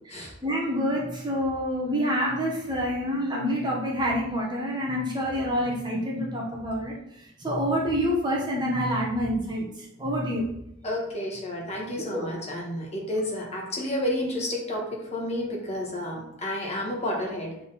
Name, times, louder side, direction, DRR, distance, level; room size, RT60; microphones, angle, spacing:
voice 1, 0.1-6.9 7.4-9.7 10.0-10.5 12.1-12.3, equal, 20° right, -3 dB, 1.0 m, -27 dB
voice 2, 10.8-17.5, left 1 dB, 30° left, -2 dB, 1.5 m, -31 dB
6.3 x 3.6 x 4.1 m, 0.77 s
head